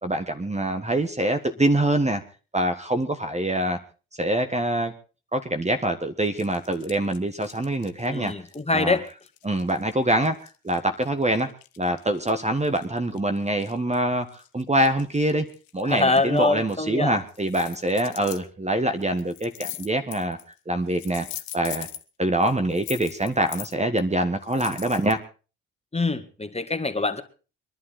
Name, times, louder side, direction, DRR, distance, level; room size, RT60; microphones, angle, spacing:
voice 1, 0.0-2.2 2.5-3.8 4.2-4.9 5.3-8.3 8.7-9.0 9.4-11.5 11.8-15.5 15.7-20.4 20.7-21.3 21.5-21.9 22.2-25.2, right 1 dB, 20° right, 8 dB, 1.5 m, -25 dB
sound 1, 6.2-9.9 10.2-14.0 14.3-16.8 17.3-18.4 19.0-20.6 20.9-22.0 22.4-24.0 24.4-25.1, left 14 dB, 70° left, 1.1 m, -41 dB
voice 2, 8.1-9.0 15.8-17.2 25.9-27.2, left 3 dB, 15° left, 8 dB, 2.0 m, -24 dB
23.0 x 11.5 x 4.2 m, 0.36 s
hypercardioid pair, 45°, 37 cm